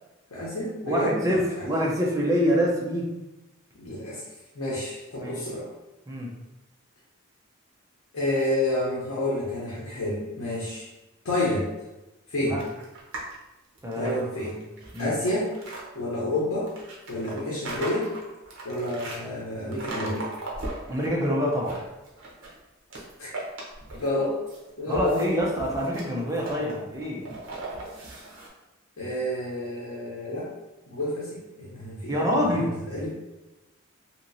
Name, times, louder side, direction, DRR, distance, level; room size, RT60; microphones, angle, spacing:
voice 1, 0.3-1.4 3.7-4.2 4.5-5.7 8.1-10.9 11.2-11.7 12.3-12.6 13.9-14.5 15.0-15.5 15.9-16.7 17.1-18.1 18.6-20.2 23.2-23.3 23.9-24.4 24.8-25.3 29.0-30.5 30.9-33.1, left 1 dB, 80° left, -7 dB, 0.8 m, -29 dB
voice 2, 0.9-3.2 5.2-5.4 6.1-6.3 12.4-12.6 13.8-14.6 14.9-15.2 20.9-21.8 24.9-27.3 32.1-32.8, equal, 15° right, -3 dB, 0.5 m, -26 dB
sound 1, 12.6-13.3 13.7-15.8 16.7-19.2 19.7-21.1 21.5-22.6 22.9-24.2 24.5-28.5, right 2 dB, 65° right, 0.7 m, -38 dB
2.9 x 2.9 x 2.6 m, 1.0 s
head